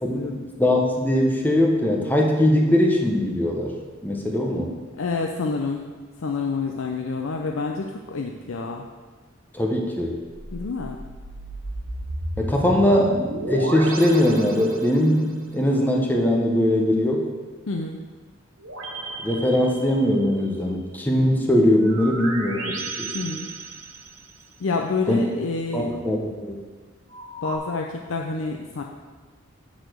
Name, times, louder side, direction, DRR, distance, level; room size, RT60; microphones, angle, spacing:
voice 1, 0.0-3.7 4.0-4.7 9.5-10.2 12.4-13.2 13.5-17.3 19.2-23.1 25.1-25.2 25.7-26.6, left 1 dB, 10° left, 0 dB, 1.0 m, -21 dB
voice 2, 5.0-5.9 6.2-8.8 10.5-11.0 17.7-18.0 23.1-23.5 24.6-25.9 27.4-28.8, left 4 dB, 75° left, 2 dB, 0.6 m, -28 dB
sound 1, 10.3-15.3 18.6-20.4 21.8-24.4 27.1-27.6, right 2 dB, 90° right, 1.6 m, -34 dB
9.4 x 4.2 x 6.3 m, 1.4 s
head